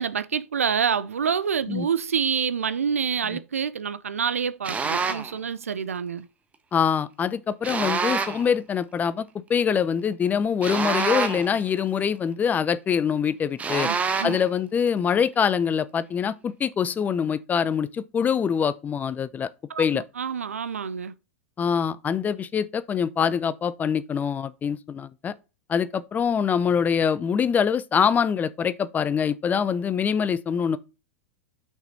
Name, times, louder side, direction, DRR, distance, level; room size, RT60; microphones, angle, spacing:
voice 1, 0.0-6.3 13.8-14.4 19.7-21.1, right 7 dB, 80° right, 0.5 m, -27 dB
sound 1, 4.6-5.3 7.6-8.5 10.6-11.6 13.6-14.5, right 5 dB, 20° right, 1.1 m, -26 dB
voice 2, 6.7-13.9 14.2-19.5 19.8-20.0 21.6-25.3 25.7-30.8, left 7 dB, 20° left, 0.7 m, -24 dB
6.0 x 5.6 x 3.9 m
hypercardioid pair, 95°, 7 cm